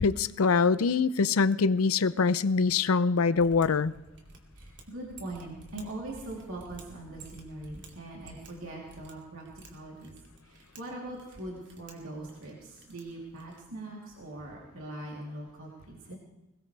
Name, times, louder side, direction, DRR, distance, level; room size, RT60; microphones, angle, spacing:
voice 1, 0.0-3.9, left 4 dB, 85° left, 16 dB, 0.6 m, -24 dB
Mechanisms, 3.3-13.8, right 2 dB, 60° right, 2.7 m, -53 dB
voice 2, 4.5-10.1 10.4-16.2, right 2 dB, 75° right, -3 dB, 3.2 m, -42 dB
21.5 x 19.0 x 3.4 m, 1.0 s
head